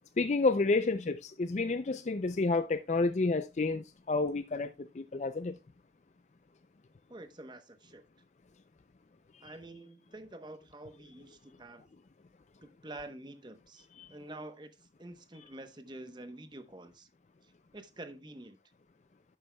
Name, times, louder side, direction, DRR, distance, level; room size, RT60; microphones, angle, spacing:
voice 1, 0.2-5.6 14.0-14.1, left 3 dB, 40° left, 0.4 m, -30 dB
voice 2, 7.1-8.0 9.4-11.9 12.6-17.1 17.4-18.6, right 1 dB, 25° right, 0.9 m, -48 dB
11.5 x 8.7 x 2.2 m
head